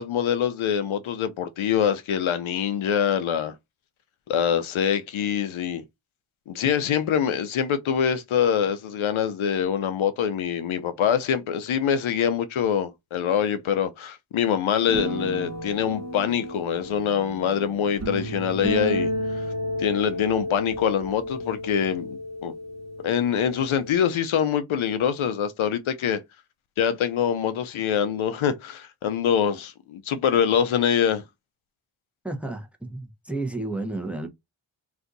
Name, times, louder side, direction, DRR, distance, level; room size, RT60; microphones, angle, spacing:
voice 1, 0.0-3.5 4.3-5.8 6.5-19.1 19.8-22.5 23.0-26.2 26.8-31.2, left 8 dB, 80° left, 0.6 m, -24 dB
sound 1, 14.9-23.9, equal, 35° right, 1.0 m, -32 dB
voice 2, 32.2-34.3, right 2 dB, 5° right, 0.8 m, -31 dB
2.6 x 2.4 x 3.9 m
cardioid pair, 50°, 48 cm